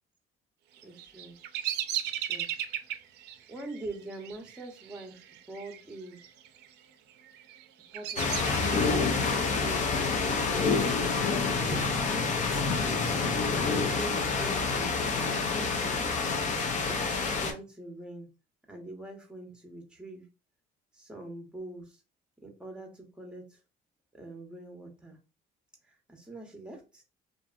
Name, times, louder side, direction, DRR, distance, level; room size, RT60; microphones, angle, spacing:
voice 1, 0.8-1.4 2.2-2.5 3.5-5.2 5.5-6.2 7.9-8.7 9.4-10.7 11.5-12.4 12.8-16.0 16.9-17.0 17.3-18.3 18.7-20.2 20.9-22.0 22.4-23.4 24.1-25.2 26.1-27.0, right 2 dB, 5° right, 2 dB, 0.9 m, -44 dB
Bird vocalization bird call bird song, 0.8-5.8 6.1-6.7 7.2-9.2, right 11 dB, 85° right, 0.4 m, -36 dB
sound 1, 8.2-17.5, left 4 dB, 45° left, 0.6 m, -28 dB
2.7 x 2.5 x 2.3 m, 0.30 s
cardioid pair, 110°, 17 cm